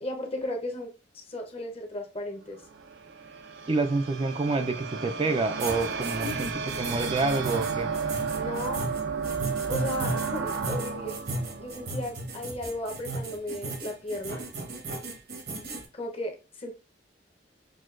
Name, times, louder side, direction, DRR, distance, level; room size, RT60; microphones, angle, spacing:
voice 1, 0.0-2.6 6.2-6.4 8.3-8.9 9.7-11.2 11.6-14.5 15.9-16.7, left 1 dB, 35° left, 3 dB, 0.8 m, -35 dB
sound 1, 2.5-12.9, right 5 dB, 80° right, 0.6 m, -33 dB
voice 2, 3.7-6.5 6.8-7.9, right 3 dB, 30° right, 6 dB, 0.4 m, -27 dB
sound 2, 5.6-15.8, right 2 dB, 60° right, 0.9 m, -35 dB
6.2 x 2.3 x 2.4 m, 0.31 s
head